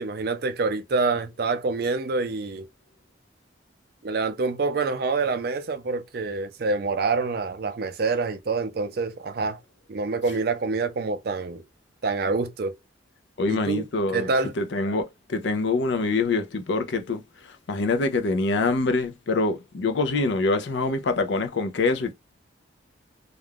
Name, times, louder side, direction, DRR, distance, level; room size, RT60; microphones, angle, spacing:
voice 1, 0.0-2.7 4.0-9.6 9.9-11.6 12.0-12.7 13.5-13.8 14.1-14.6, right 3 dB, 50° right, 0.4 m, -26 dB
voice 2, 13.4-14.3 14.6-17.2 17.7-22.1, left 3 dB, 65° left, 0.5 m, -25 dB
2.4 x 2.2 x 3.3 m
head